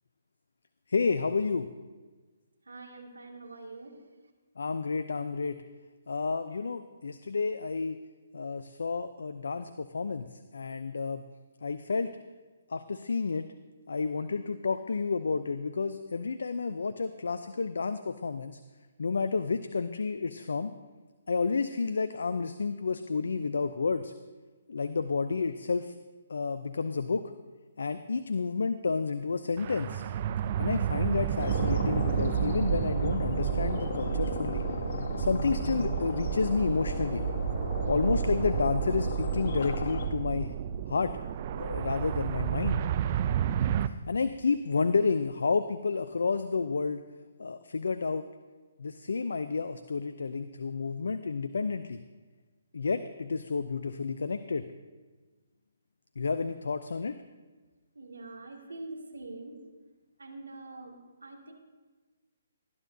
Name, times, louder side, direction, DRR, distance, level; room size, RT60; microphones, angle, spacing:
voice 1, 0.9-1.7 4.6-5.6 6.1-8.0 8.3-11.2 11.6-12.1 12.7-13.5 13.9-18.6 19.0-20.7 21.3-24.1 24.7-25.9 26.3-27.3 27.8-30.0 30.6-34.7 35.2-37.2 37.9-40.5 40.9-41.1 41.6-42.8 43.8-47.0 47.4-48.3 48.8-52.0 52.7-54.7 56.2-57.2, left 4 dB, 75° left, 10 dB, 0.5 m, -30 dB
voice 2, 2.7-4.0 58.0-59.6 60.2-61.0 61.2-61.5, right 2 dB, 85° right, 2 dB, 2.2 m, -44 dB
sound 1, 29.6-43.9, right 9 dB, 40° right, 0.5 m, -31 dB
sound 2, 31.4-40.1, left 4 dB, 55° left, 1.4 m, -37 dB
sound 3, 34.6-40.2, right 1 dB, ahead, 4.0 m, -40 dB
19.0 x 11.0 x 2.7 m, 1.3 s
figure-of-eight pair, 140°, 0 cm